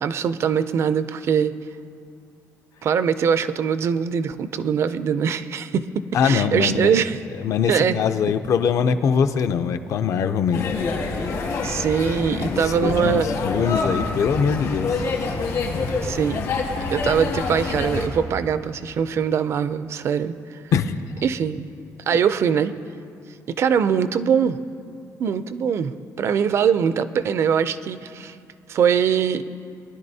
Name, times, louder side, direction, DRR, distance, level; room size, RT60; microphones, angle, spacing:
voice 1, 0.0-1.5 2.8-7.2 7.7-8.0 11.6-13.3 16.0-16.4 16.9-20.6 21.2-21.6 22.1-22.7 23.6-24.6 25.2-28.4 28.7-29.5, right 7 dB, 45° right, 13 dB, 0.4 m, -22 dB
voice 2, 6.1-6.9 7.4-10.7 11.0-11.4 12.4-15.1 20.7-21.0, left 6 dB, 55° left, 9 dB, 0.5 m, -22 dB
sound 1, 10.5-18.1, left 4 dB, 70° left, 1.9 m, -26 dB
22.0 x 11.0 x 2.7 m, 2.3 s
cardioid pair, 180°, 6 cm